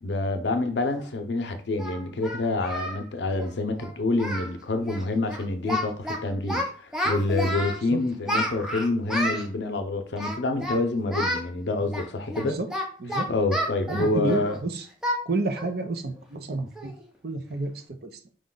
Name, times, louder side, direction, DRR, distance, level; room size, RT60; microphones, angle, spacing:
voice 1, 0.0-12.6 13.3-14.6, left 2 dB, 70° left, 0.6 m, -27 dB
Singing, 1.0-1.1 1.8-3.0 3.3-3.5 3.8-4.5 4.8-5.0 5.3-6.2 6.5-7.8 8.2-9.5 10.1-10.8 11.1-11.4 11.9-14.5 15.0-15.2 15.6-15.7 16.2-16.3 16.7-17.0, equal, 5° right, 0.6 m, -30 dB
voice 2, 13.9-14.8 15.3-16.9 17.2-17.7 18.0-18.1, right 2 dB, 55° right, 0.6 m, -30 dB
5.0 x 2.2 x 3.8 m
head